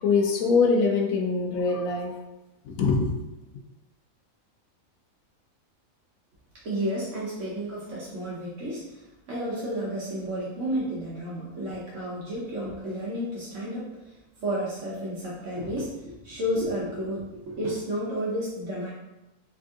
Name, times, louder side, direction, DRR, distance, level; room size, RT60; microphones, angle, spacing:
voice 1, 0.0-2.1 2.6-3.2, left 4 dB, 90° left, 2 dB, 1.1 m, -23 dB
voice 2, 6.6-9.0 9.3-14.1 14.4-18.9, equal, 70° right, -7 dB, 1.2 m, -31 dB
3.6 x 2.6 x 3.6 m, 0.99 s
omnidirectional pair, 1.4 m